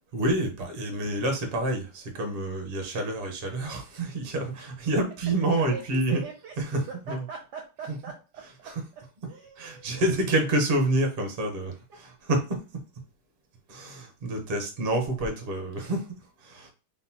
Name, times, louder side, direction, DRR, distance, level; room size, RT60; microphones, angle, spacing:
voice 1, 0.1-6.2 6.6-7.2 7.8-8.0 8.4-8.8 9.6-12.6 13.7-16.7, right 1 dB, 35° right, 1.0 m, -28 dB
voice 2, 4.4-4.7 5.5-6.6 6.9-8.7 9.2-9.9, right 5 dB, 65° right, 1.2 m, -42 dB
4.0 x 3.9 x 2.8 m
omnidirectional pair, 2.2 m